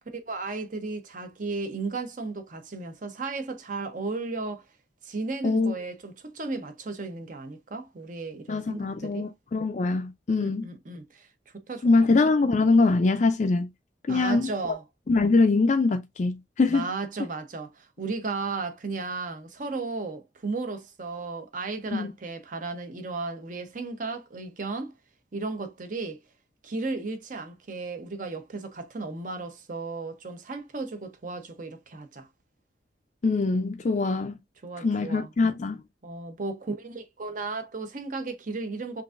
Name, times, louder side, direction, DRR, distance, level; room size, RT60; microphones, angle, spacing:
voice 1, 0.1-4.6 5.0-9.3 10.4-11.3 11.7-11.9 14.1-14.8 16.7-24.9 25.3-26.2 26.6-32.3 34.6-35.3 36.0-39.0, right 3 dB, 45° right, 0.8 m, -34 dB
voice 2, 5.4-5.7 8.5-10.7 11.8-13.7 14.1-14.8 15.1-16.9 21.9-22.1 33.2-34.4 34.8-35.8, left 3 dB, 40° left, 0.4 m, -23 dB
5.8 x 2.6 x 2.4 m
head